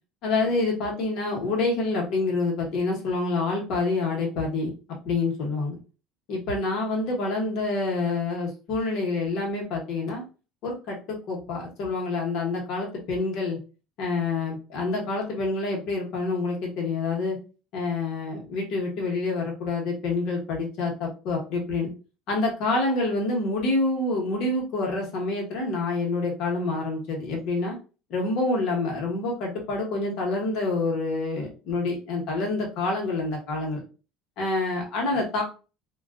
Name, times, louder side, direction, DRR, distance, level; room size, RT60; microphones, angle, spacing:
voice 1, 0.2-4.7 5.0-5.7 6.3-10.2 10.6-13.6 14.0-17.4 17.7-21.9 22.3-27.8 28.1-33.8 34.4-35.4, left 3 dB, 60° left, 0 dB, 1.0 m, -27 dB
2.3 x 2.3 x 2.3 m, 0.34 s
cardioid pair, 125°, 0 cm